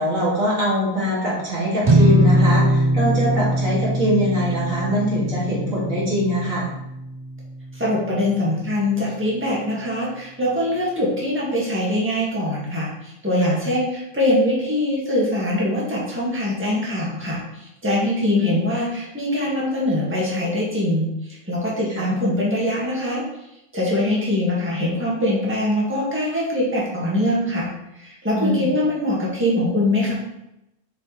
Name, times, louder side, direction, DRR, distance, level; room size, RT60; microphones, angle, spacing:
voice 1, 0.0-6.7 13.4-13.6 18.4-18.6 21.9-22.1 28.3-28.7, equal, 80° right, -7 dB, 3.1 m, -23 dB
sound 1, 1.8-8.3, right 1 dB, 40° right, 0.3 m, -21 dB
voice 2, 7.7-23.2 23.7-27.7 27.9-30.1, left 1 dB, 10° right, -6 dB, 2.0 m, -23 dB
6.9 x 6.2 x 3.3 m, 0.87 s
omnidirectional pair, 1.4 m